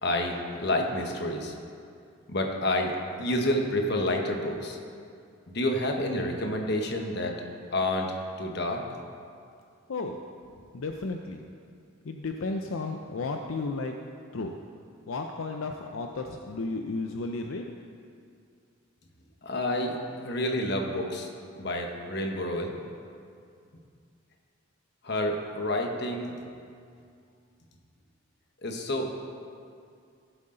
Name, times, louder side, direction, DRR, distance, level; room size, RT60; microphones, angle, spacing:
voice 1, 0.0-1.5 2.3-2.9 3.2-4.8 5.5-7.4 7.7-8.8 19.4-19.9 20.2-21.3 21.6-22.8 25.0-26.3 28.6-29.1, left 1 dB, 50° left, 2 dB, 1.2 m, -29 dB
voice 2, 10.7-11.4 12.0-13.9 14.3-14.5 15.1-17.7, left 3 dB, 75° left, 4 dB, 0.5 m, -33 dB
15.5 x 8.0 x 3.8 m, 2.4 s
head